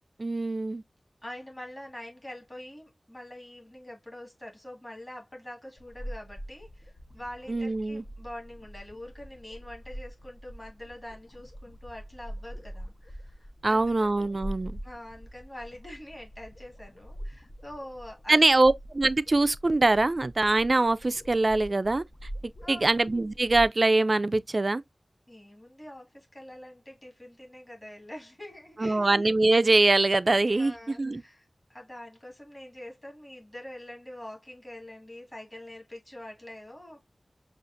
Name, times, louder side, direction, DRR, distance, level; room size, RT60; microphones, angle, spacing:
voice 1, 0.2-0.8 7.5-8.0 13.6-14.8 18.3-22.0 22.7-24.8 28.8-31.2, right 2 dB, 50° right, 0.3 m, -23 dB
voice 2, 1.2-14.5 14.8-18.4 22.6-23.0 25.3-29.1 30.5-37.0, left 1 dB, 20° left, 1.8 m, -45 dB
sound 1, 5.8-23.7, equal, 55° left, 0.9 m, -44 dB
6.9 x 2.4 x 2.5 m
wide cardioid pair, 65°, 0 cm